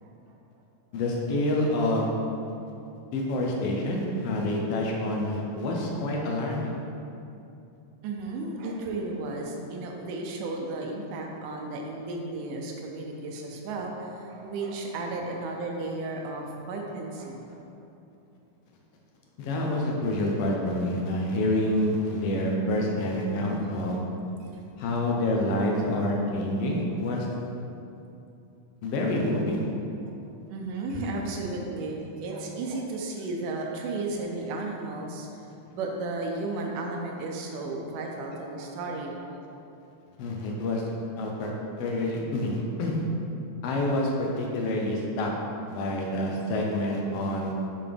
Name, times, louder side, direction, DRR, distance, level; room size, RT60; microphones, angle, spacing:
voice 1, 0.9-2.1 3.1-6.7 19.4-24.0 24.8-27.3 28.8-29.6 40.2-41.5 41.8-43.0 43.6-45.3 45.7-47.5, left 1 dB, 70° left, -1 dB, 1.5 m, -27 dB
voice 2, 8.0-17.6 24.4-24.7 26.9-27.1 30.0-30.2 30.5-35.3 35.7-39.4, right 2 dB, 90° right, 0 dB, 2.3 m, -34 dB
8.9 x 4.2 x 3.4 m, 2.7 s
omnidirectional pair, 3.6 m